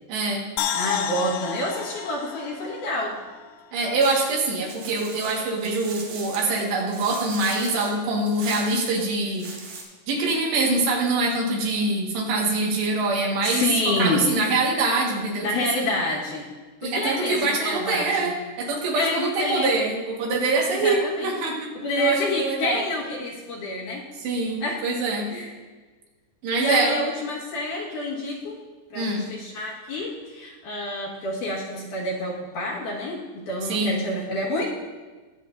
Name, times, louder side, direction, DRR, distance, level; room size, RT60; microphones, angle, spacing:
voice 1, 0.1-0.5 3.7-9.5 10.1-13.7 14.0-15.5 16.8-21.7 22.0-22.8 24.2-25.3 26.4-27.0 29.0-29.3 33.7-34.0, right 3 dB, 90° right, -2 dB, 3.9 m, -24 dB
sound 1, 0.6-3.8 4.1-4.2, left 9 dB, 85° left, 2.6 m, -31 dB
voice 2, 0.7-3.2 13.4-14.3 15.4-16.5 16.8-18.4 18.9-19.7 20.7-21.3 21.7-24.1 24.6-24.8 25.3-25.5 26.6-28.6 28.9-34.7, left 1 dB, 60° left, -4 dB, 2.7 m, -28 dB
sound 2, 4.0-9.8, right 4 dB, 60° right, 3.8 m, -40 dB
22.0 x 7.5 x 2.6 m, 1.3 s
omnidirectional pair, 4.8 m